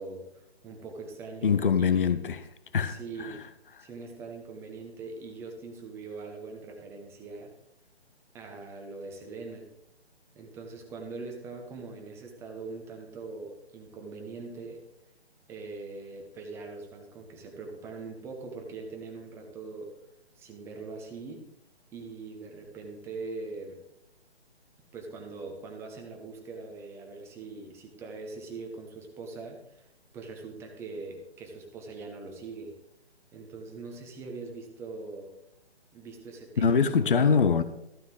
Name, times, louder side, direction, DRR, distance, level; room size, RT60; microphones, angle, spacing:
voice 1, 0.0-2.1 2.8-3.4 3.8-7.5 8.3-9.7 10.3-14.8 15.5-19.9 20.4-21.4 21.9-23.8 24.9-29.9 30.1-32.7 33.3-35.3 35.9-37.3, right 3 dB, 10° right, 1.1 m, -42 dB
voice 2, 1.4-2.4 2.7-3.4 36.6-37.6, left 6 dB, 50° left, 0.8 m, -24 dB
14.0 x 9.2 x 3.9 m
figure-of-eight pair, 140°, 33 cm